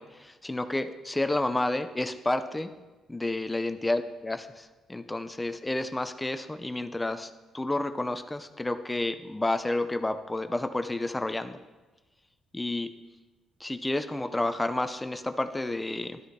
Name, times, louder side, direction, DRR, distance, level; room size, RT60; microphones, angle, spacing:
voice 1, 0.0-2.7 3.1-11.6 12.5-12.9 13.6-16.2, left 2 dB, 15° left, 9 dB, 0.7 m, -30 dB
13.0 x 12.5 x 4.3 m, 1.2 s
cardioid pair, 90°, 0 cm